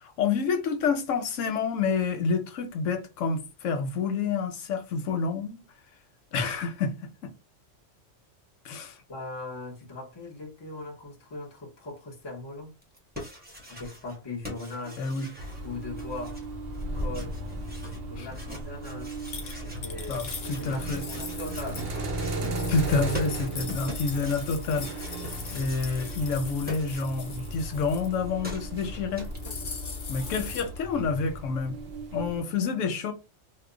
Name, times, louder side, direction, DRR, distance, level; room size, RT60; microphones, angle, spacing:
voice 1, 0.0-5.6 6.3-7.3 8.6-9.0 15.0-15.3 18.2-18.3 20.1-21.0 22.7-25.1 25.5-29.3 30.1-31.8 32.1-33.1, left 4 dB, 90° left, 1.0 m, -28 dB
voice 2, 9.1-12.7 13.7-15.0 15.6-16.4 16.9-17.4 17.8-19.1 19.6-21.9, left 2 dB, 25° left, 0.7 m, -40 dB
sound 1, 12.8-14.2 14.4-27.4 27.7-29.5, left 1 dB, 10° right, 0.7 m, -43 dB
sound 2, 15.4-32.4, right 1 dB, 60° right, 0.8 m, -36 dB
sound 3, 19.3-22.0 22.3-28.2 28.6-28.9 29.1-30.6, left 5 dB, 55° left, 0.9 m, -41 dB
3.0 x 2.1 x 3.7 m
omnidirectional pair, 1.3 m